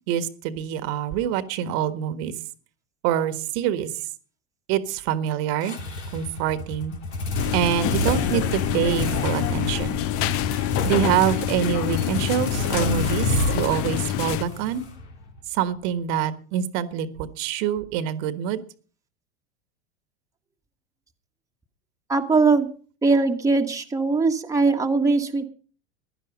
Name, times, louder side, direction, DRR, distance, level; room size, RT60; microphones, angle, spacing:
voice 1, 0.1-2.3 3.0-3.9 4.7-5.8 6.1-6.9 7.5-10.0 10.5-14.8 15.5-18.6, right 10 dB, 55° right, 11 dB, 1.6 m, -25 dB
sound 1, 5.6-15.4, left 2 dB, 85° left, 2.9 m, -29 dB
sound 2, 7.3-14.4, left 14 dB, 45° left, 0.7 m, -27 dB
voice 2, 22.1-22.7 23.0-25.4, right 3 dB, 10° right, 3 dB, 1.4 m, -20 dB
16.0 x 11.0 x 5.3 m, 0.41 s
hypercardioid pair, 95°, 33 cm